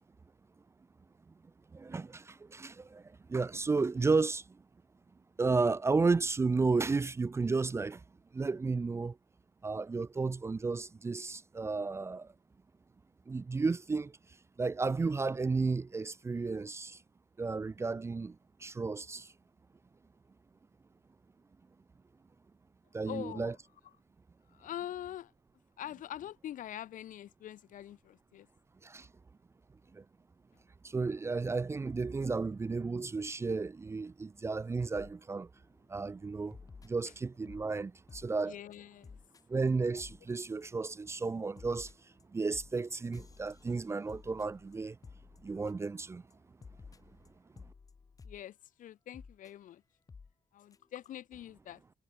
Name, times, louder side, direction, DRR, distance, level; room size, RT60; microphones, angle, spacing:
voice 1, 1.7-4.6 5.4-8.0 8.3-9.2 9.6-12.3 13.3-14.2 14.6-17.0 17.4-19.3 22.9-23.5 28.8-29.1 29.9-30.0 30.8-35.5 35.9-36.6 36.8-38.6 39.5-41.9 42.3-45.0 45.4-46.2, right 4 dB, 20° right, 0.7 m, -33 dB
voice 2, 23.1-23.6 24.5-25.3 25.8-28.5 38.4-39.2 48.2-49.8 50.5-51.8, left 11 dB, 75° left, 3.9 m, -44 dB
sound 1, 34.9-35.2 35.6-35.8 36.5-37.7 38.1-38.4 38.7-38.8 39.0-39.4 39.7-39.8 40.0-40.3 40.6-41.0 41.2-46.0 46.3-46.4 46.6-48.4 49.1-49.5 50.1-50.3 50.7-50.8 51.0-51.1, left 5 dB, 25° left, 2.3 m, -53 dB
cardioid pair, 165°, 14 cm